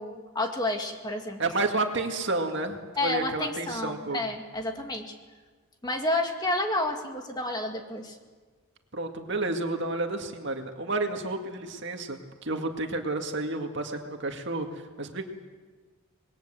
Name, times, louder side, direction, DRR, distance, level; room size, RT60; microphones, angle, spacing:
voice 1, 0.0-1.4 3.0-5.2 5.8-8.2, left 2 dB, 20° left, 3 dB, 2.0 m, -30 dB
voice 2, 1.4-4.2 8.9-15.2, right 2 dB, 55° right, 4 dB, 2.1 m, -31 dB
26.5 x 21.0 x 7.7 m, 1.4 s
head